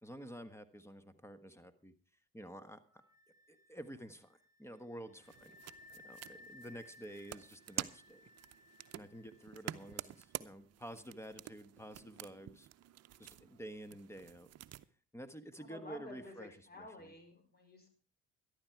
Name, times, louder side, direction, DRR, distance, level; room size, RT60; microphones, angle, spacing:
voice 1, 0.0-1.9 2.3-2.8 3.5-5.6 6.0-8.2 8.9-12.7 13.2-14.5 15.1-16.5 16.8-17.1, equal, 10° left, 12 dB, 1.5 m, -50 dB
Wind instrument woodwind instrument, 2.9-10.3, left 2 dB, 10° right, 2.8 m, -61 dB
sound 1, 5.2-14.8, right 13 dB, 55° right, 0.7 m, -49 dB
voice 2, 15.6-17.9, left 1 dB, 30° left, 6 dB, 5.4 m, -52 dB
13.0 x 12.0 x 4.7 m, 0.39 s
supercardioid pair, 70°, 31 cm